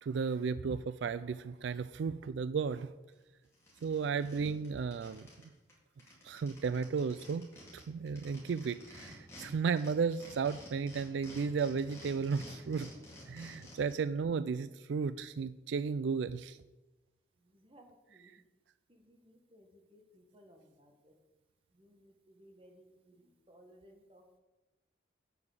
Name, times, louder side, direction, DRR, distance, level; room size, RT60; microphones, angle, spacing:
voice 1, 0.0-2.9 3.8-5.3 6.2-7.5 7.7-12.9 13.3-16.6 18.2-18.3, right 5 dB, 75° right, 14 dB, 0.4 m, -34 dB
sound 1, 3.1-3.2 3.5-5.4 5.7-5.8 6.0-9.5 9.8-14.0, left 1 dB, 15° left, 3.6 m, -52 dB
voice 2, 19.3-19.6 19.9-20.0 20.3-20.6 22.4-22.7 23.5-24.4, equal, 30° right, 3 dB, 1.7 m, -58 dB
8.4 x 7.1 x 8.3 m, 1.1 s
head